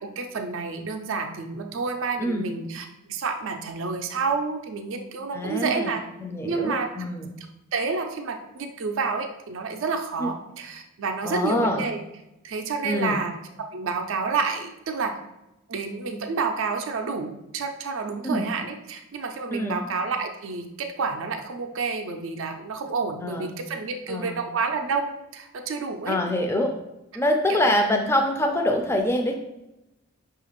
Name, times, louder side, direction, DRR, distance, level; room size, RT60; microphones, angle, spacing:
voice 1, 0.0-6.0 6.4-7.1 7.7-12.0 12.4-13.3 13.7-15.1 15.7-26.2 27.5-27.7, right 4 dB, 65° right, 5 dB, 0.4 m, -29 dB
voice 2, 5.3-5.9 6.2-7.3 10.2-10.3 11.2-11.8 12.8-13.2 18.2-18.4 19.5-19.8 23.2-23.5 24.1-24.4 26.1-26.7 27.1-29.3, left 1 dB, 10° left, 2 dB, 0.3 m, -25 dB
5.7 x 2.4 x 3.0 m, 0.90 s
head